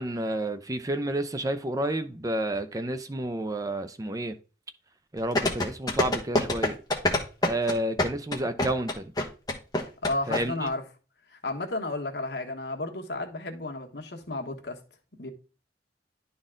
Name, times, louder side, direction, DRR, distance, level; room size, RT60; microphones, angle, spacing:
voice 1, 0.0-4.3 5.1-6.8 7.4-9.1 10.3-10.7, right 1 dB, 20° right, 0.5 m, -30 dB
sound 1, 5.3-10.4 10.7-10.8, left 1 dB, 20° left, 1.2 m, -25 dB
voice 2, 10.0-10.8 11.3-14.8 15.2-15.3, left 2 dB, 70° left, 1.4 m, -32 dB
11.0 x 4.1 x 3.8 m
head